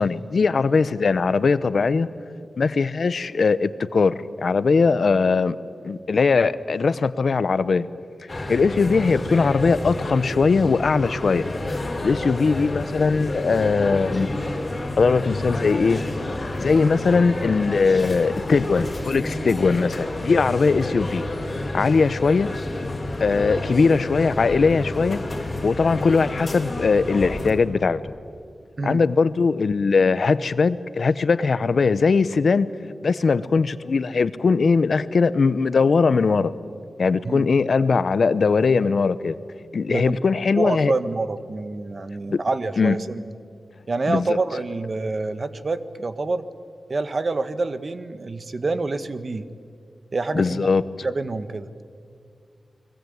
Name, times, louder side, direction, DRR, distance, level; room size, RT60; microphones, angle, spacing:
voice 1, 0.0-2.1 2.6-5.6 5.8-7.9 8.5-11.4 12.0-14.3 15.0-16.0 16.6-21.2 21.7-22.5 23.2-25.2 25.6-28.0 28.8-32.7 33.0-36.5 37.0-39.4 39.7-40.9 42.3-42.4 42.8-43.0 44.1-44.4 50.3-50.8, left 4 dB, 65° left, 15 dB, 0.9 m, -20 dB
sound 1, 8.3-27.5, left 2 dB, 30° left, 4.7 m, -29 dB
voice 2, 40.6-43.2 43.9-46.5 46.9-49.5 50.1-50.7 51.0-51.7, right 3 dB, 45° right, 12 dB, 1.2 m, -27 dB
30.0 x 21.0 x 9.4 m, 2.2 s
wide cardioid pair, 125°, 0 cm